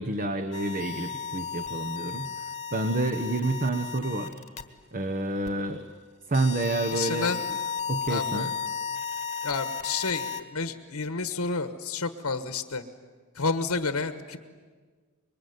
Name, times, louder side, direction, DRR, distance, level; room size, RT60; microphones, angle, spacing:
voice 1, 0.0-2.3 2.7-4.4 4.9-5.9 6.3-7.4 7.9-8.5, right 2 dB, 40° right, 6 dB, 1.2 m, -28 dB
sound 1, 0.5-4.6 5.5-5.6 6.3-10.4, left 6 dB, 30° left, 1.3 m, -34 dB
voice 2, 6.9-7.4 8.1-8.5 9.4-12.8 13.3-14.4, left 4 dB, 90° left, 10 dB, 1.4 m, -30 dB
26.0 x 22.5 x 9.5 m, 1.5 s
head